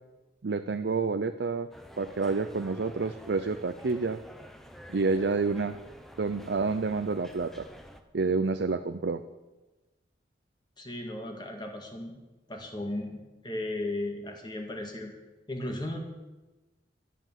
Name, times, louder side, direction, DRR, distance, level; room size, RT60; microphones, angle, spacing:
voice 1, 0.4-1.7 2.0-4.2 4.9-5.8 6.2-7.7 8.1-9.2, right 4 dB, 70° right, 10 dB, 0.5 m, -29 dB
sound 1, 1.7-8.0, equal, ahead, 0.8 m, -49 dB
voice 2, 10.8-12.1 12.5-13.2 13.4-15.1 15.5-16.0, left 1 dB, 25° left, 2 dB, 1.9 m, -35 dB
11.5 x 10.5 x 7.4 m, 1.1 s
head